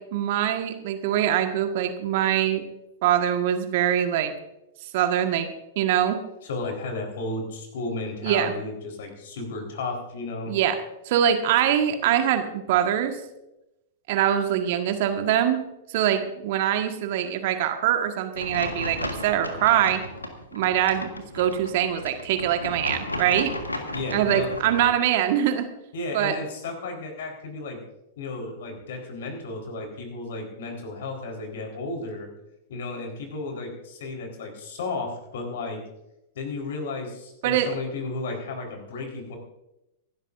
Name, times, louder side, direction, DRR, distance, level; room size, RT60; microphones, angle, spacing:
voice 1, 0.0-2.6 3.0-4.3 4.9-5.5 5.7-6.2 8.2-8.5 10.5-10.8 11.0-13.2 14.1-15.6 15.9-20.0 20.5-23.5 24.1-25.7 26.1-26.3 37.4-37.7, right 10 dB, 50° right, 6 dB, 1.6 m, -23 dB
voice 2, 6.4-10.5 23.9-24.5 25.9-27.8 28.2-32.3 32.7-35.8 36.3-39.4, left 3 dB, 60° left, 3 dB, 4.2 m, -33 dB
sound 1, 18.3-24.9, left 1 dB, 85° left, 1.7 m, -34 dB
25.5 x 12.5 x 2.6 m, 0.90 s
figure-of-eight pair, 95°, 0 cm